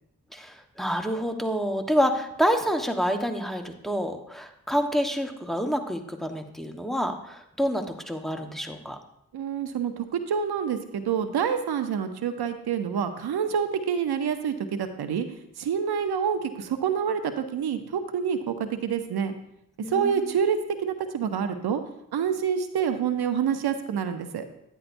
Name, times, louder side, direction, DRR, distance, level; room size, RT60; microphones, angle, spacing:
voice 1, 0.3-9.0 19.8-20.2, equal, ahead, 5 dB, 1.2 m, -28 dB
voice 2, 9.3-15.3 15.6-19.3 19.9-21.8 22.1-24.4, right 7 dB, 85° right, 9 dB, 0.8 m, -27 dB
10.5 x 9.9 x 2.6 m, 0.78 s
cardioid pair, 45°, 37 cm